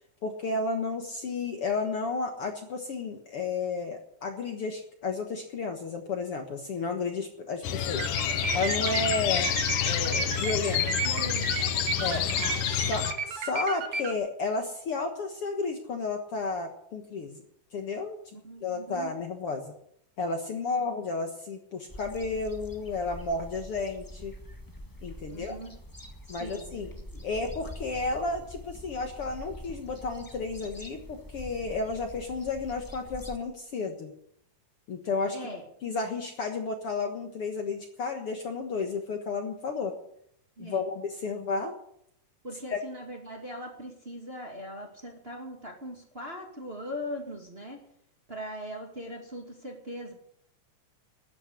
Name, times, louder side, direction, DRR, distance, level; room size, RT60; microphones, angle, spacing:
voice 1, 0.2-8.1 8.5-9.5 9.8-10.9 12.0-12.2 12.9-17.4 17.7-18.2 18.6-19.7 20.2-24.3 25.0-25.6 26.3-26.9 27.2-34.1 34.9-35.4 35.8-39.9 40.6-41.7 42.7-42.8, left 3 dB, 55° left, 4 dB, 2.0 m, -32 dB
sound 1, 7.6-13.1, left 10 dB, 85° left, 2.7 m, -28 dB
sound 2, 8.0-14.1, right 5 dB, 50° right, 2.0 m, -34 dB
voice 2, 11.0-11.7 12.0-12.6 18.4-19.1 20.8-20.9 25.3-25.8 26.3-27.2 35.3-35.6 40.6-40.8 41.3-41.5 42.4-47.8 48.3-50.1, equal, 20° right, 0 dB, 2.1 m, -40 dB
sound 3, 21.9-33.4, equal, 25° left, 0.4 m, -45 dB
13.0 x 9.5 x 9.7 m, 0.70 s
omnidirectional pair, 3.7 m